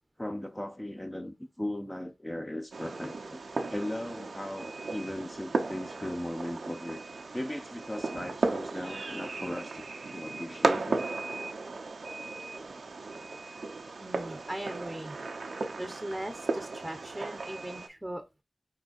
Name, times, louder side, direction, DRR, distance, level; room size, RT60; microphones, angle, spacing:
voice 1, 0.2-7.0 7.3-9.8 10.1-11.1, left 1 dB, 15° left, 0.6 m, -37 dB
Fireworks, 2.7-17.9, right 3 dB, 80° right, 0.6 m, -35 dB
voice 2, 14.0-15.2 15.8-18.4, right 1 dB, 20° right, 0.8 m, -39 dB
4.3 x 3.9 x 2.4 m
cardioid pair, 40°, 0 cm